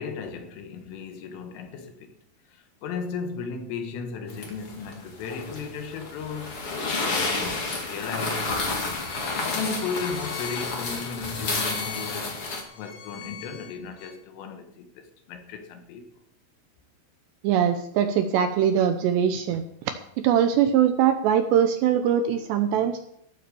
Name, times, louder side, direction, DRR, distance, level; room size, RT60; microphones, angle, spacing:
voice 1, 0.0-2.2 2.5-8.6 9.4-12.4 12.8-16.1, left 5 dB, 80° left, 4.0 m, -35 dB
sound 1, 4.3-12.6, left 3 dB, 40° left, 2.3 m, -30 dB
Bowed string instrument, 8.7-14.1, left 9 dB, 55° left, 3.1 m, -42 dB
voice 2, 17.4-19.6 20.2-23.0, right 9 dB, 80° right, 2.5 m, -22 dB
15.5 x 8.5 x 7.0 m
omnidirectional pair, 5.8 m